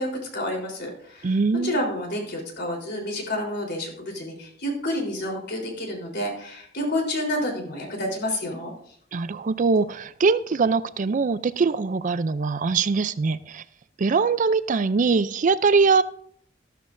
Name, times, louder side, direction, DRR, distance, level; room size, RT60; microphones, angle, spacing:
voice 1, 0.0-1.3 1.6-8.7, left 1 dB, 60° left, 0 dB, 3.7 m, -29 dB
voice 2, 1.2-1.8 9.1-13.6 14.0-16.0, right 4 dB, 40° right, 15 dB, 0.4 m, -22 dB
13.5 x 13.0 x 2.6 m, 0.62 s
head